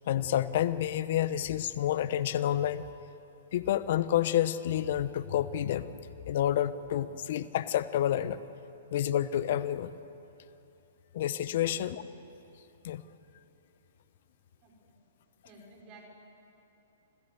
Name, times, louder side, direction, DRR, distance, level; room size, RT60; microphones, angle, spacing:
voice 1, 0.1-2.8 3.5-5.9 6.3-8.4 8.9-9.9 11.1-12.0 12.8-13.0, left 11 dB, 55° left, 15 dB, 0.9 m, -29 dB
voice 2, 15.4-16.1, right 2 dB, 35° right, 0 dB, 5.6 m, -53 dB
26.5 x 15.5 x 8.0 m, 2.9 s
hypercardioid pair, 120°, 0 cm